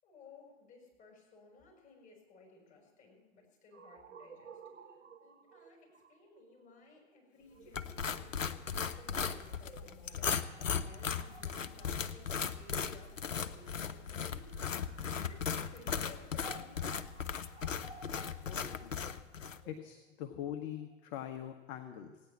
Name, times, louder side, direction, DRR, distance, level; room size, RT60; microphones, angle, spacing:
voice 1, 0.0-4.6 4.9-14.5 15.1-16.9, left 3 dB, 20° left, -1 dB, 6.4 m, -59 dB
sound 1, 3.7-13.6 14.3-21.3, right 3 dB, 70° right, 1.5 m, -56 dB
sound 2, 7.7-19.6, left 7 dB, 90° left, 0.7 m, -37 dB
voice 2, 18.4-19.0 19.7-22.2, left 10 dB, 35° left, 5 dB, 1.0 m, -43 dB
17.0 x 9.7 x 7.2 m, 1.2 s
figure-of-eight pair, 100°, 38 cm